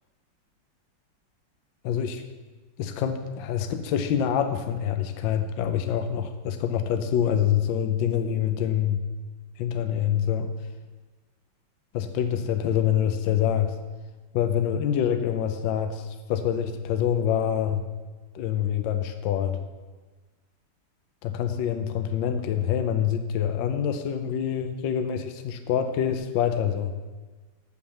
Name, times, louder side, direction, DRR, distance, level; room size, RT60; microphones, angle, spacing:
voice 1, 1.8-2.2 2.8-9.0 9.6-10.5 11.9-13.7 14.3-17.8 18.3-19.6 21.2-26.9, left 9 dB, 75° left, 7 dB, 1.3 m, -26 dB
7.3 x 6.6 x 6.9 m, 1.3 s
omnidirectional pair, 2.2 m